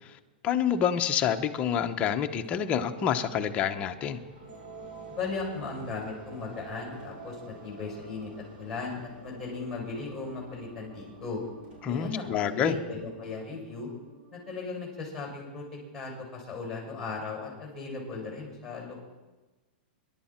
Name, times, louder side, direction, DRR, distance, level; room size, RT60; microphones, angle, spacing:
voice 1, 0.4-4.2 11.8-12.8, left 8 dB, 20° left, 6 dB, 0.8 m, -27 dB
sound 1, 2.3-15.2, right 3 dB, 85° right, 5.9 m, -48 dB
voice 2, 5.1-8.3 8.6-11.4 11.9-13.9 14.3-15.6 15.9-19.1, left 4 dB, 5° left, -2 dB, 6.0 m, -37 dB
25.5 x 11.5 x 4.4 m, 1.2 s
supercardioid pair, 160°, 6 cm